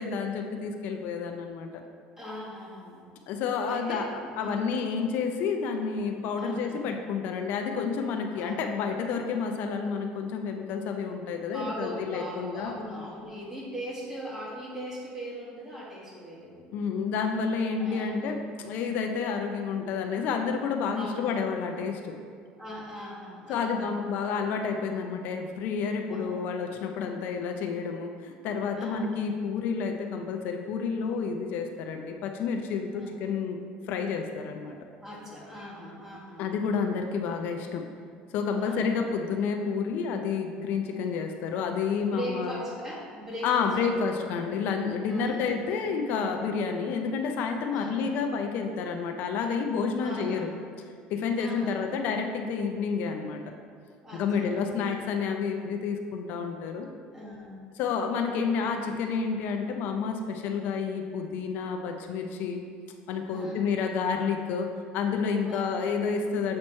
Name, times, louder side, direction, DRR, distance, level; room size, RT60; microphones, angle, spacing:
voice 1, 0.0-1.8 3.3-4.1 4.4-12.7 16.7-22.1 23.5-33.6 33.9-34.8 36.4-37.8 38.3-42.6 43.4-50.5 51.1-53.4 54.1-56.9 57.8-62.6 63.1-64.7 64.9-66.6, left 5 dB, 65° left, 4 dB, 0.4 m, -30 dB
voice 2, 2.2-3.1 3.7-4.7 6.4-6.9 8.3-8.7 11.5-16.7 17.8-18.2 20.9-21.4 22.6-24.0 26.1-26.4 28.8-29.3 32.9-33.1 34.6-36.5 38.5-39.0 40.9-41.0 42.0-44.1 45.1-45.9 47.7-48.1 50.0-50.5 51.3-51.9 54.0-54.9 57.1-57.7 63.3-63.7 65.4-65.8, equal, 15° right, -5 dB, 1.5 m, -40 dB
7.5 x 2.9 x 4.3 m, 2.1 s
cardioid pair, 120°, 3 cm